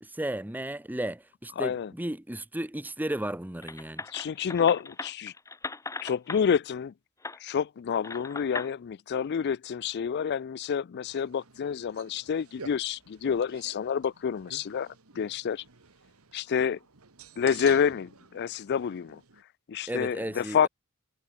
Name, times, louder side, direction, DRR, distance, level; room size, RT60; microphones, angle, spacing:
voice 1, 0.0-4.0 19.9-20.7, right 1 dB, 10° right, 1.0 m, -34 dB
voice 2, 1.6-1.9 4.1-5.3 6.0-6.9 7.4-14.9 15.2-15.6 16.3-16.8 17.4-19.2 19.7-20.7, left 7 dB, 50° left, 0.4 m, -28 dB
sound 1, 3.6-6.4 7.2-7.4 8.0-8.7, left 3 dB, 15° left, 0.6 m, -38 dB
sound 2, 11.1-19.4, right 6 dB, 85° right, 1.8 m, -51 dB
head